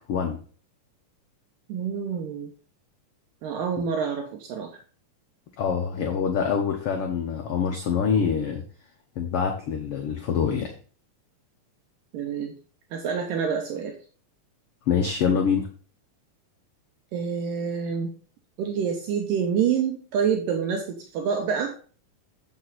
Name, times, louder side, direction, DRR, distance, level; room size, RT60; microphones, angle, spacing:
voice 1, 1.7-2.5 3.4-4.7 12.1-12.5 12.9-14.0 17.1-18.1 18.6-21.7, right 7 dB, 75° right, 3 dB, 2.5 m, -27 dB
voice 2, 5.6-8.6 9.2-10.7 14.9-15.7, left 6 dB, 70° left, 2 dB, 1.4 m, -25 dB
7.9 x 6.3 x 4.1 m, 0.41 s
omnidirectional pair, 4.0 m